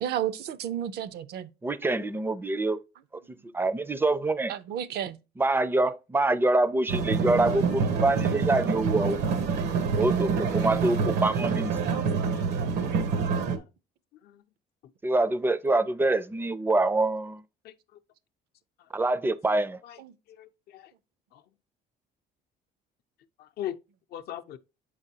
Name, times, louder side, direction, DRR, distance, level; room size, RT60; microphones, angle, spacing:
voice 1, 0.0-1.5 4.5-5.2 20.0-20.1, right 10 dB, 70° right, 0.5 m, -32 dB
voice 2, 1.6-2.8 3.4-4.5 5.4-9.2 10.0-12.1 15.0-17.4 18.9-19.8, right 2 dB, 15° right, 0.4 m, -25 dB
sound 1, 6.9-13.6, right 5 dB, 90° right, 1.0 m, -27 dB
voice 3, 20.4-20.9 21.3-21.4 23.4-23.8 24.1-24.6, left 11 dB, 70° left, 0.6 m, -39 dB
7.4 x 4.9 x 2.8 m
cardioid pair, 110°, 17 cm